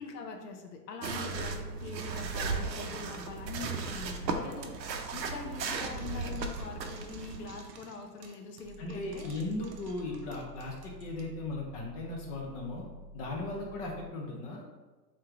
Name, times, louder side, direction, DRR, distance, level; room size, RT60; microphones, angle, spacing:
voice 1, 0.0-4.8 5.1-9.3, left 4 dB, 70° left, 4 dB, 0.8 m, -43 dB
sound 1, 1.0-7.6, right 4 dB, 85° right, 0.7 m, -36 dB
Frying (food), 5.8-11.3, right 5 dB, 45° right, 0.6 m, -54 dB
sound 2, 8.6-14.1, left 1 dB, 20° right, 1.2 m, -50 dB
voice 2, 8.8-12.8 13.1-14.6, left 2 dB, 25° left, -1 dB, 0.4 m, -37 dB
3.5 x 3.1 x 3.6 m, 1.2 s
hypercardioid pair, 115°, 50 cm